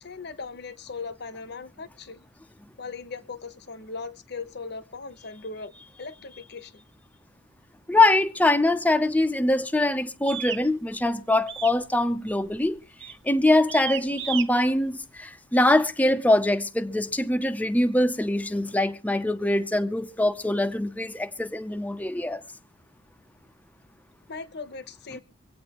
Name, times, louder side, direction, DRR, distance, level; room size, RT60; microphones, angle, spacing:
voice 1, 0.0-2.2 2.8-5.7 6.0-6.8 24.3-25.2, left 4 dB, 60° left, 1.0 m, -38 dB
voice 2, 7.9-12.8 13.2-22.4, left 1 dB, 10° left, 0.6 m, -23 dB
sound 1, 10.3-10.6 11.5-11.8 12.1-12.5 13.0-13.2 13.7-14.5, right 10 dB, 75° right, 1.1 m, -33 dB
25.0 x 8.7 x 3.0 m
head